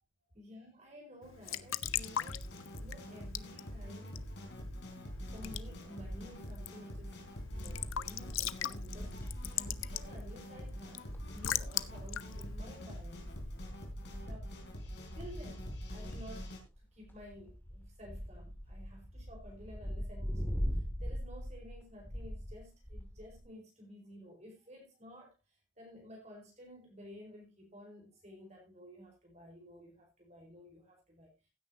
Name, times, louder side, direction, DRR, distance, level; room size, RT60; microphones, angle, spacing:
voice 1, 0.3-4.2 5.2-7.2 7.5-13.3 14.3-14.5 15.1-31.3, equal, 35° right, 4.6 m, -53 dB
Raindrop / Drip / Trickle dribble, 1.2-13.7, left 11 dB, 80° left, 0.6 m, -42 dB
sound 1, 1.8-16.6, equal, 55° left, 3.7 m, -46 dB
sound 2, 4.5-6.4 6.7-6.8 7.1-23.4, equal, 10° left, 2.2 m, -43 dB
15.5 x 9.5 x 2.7 m
head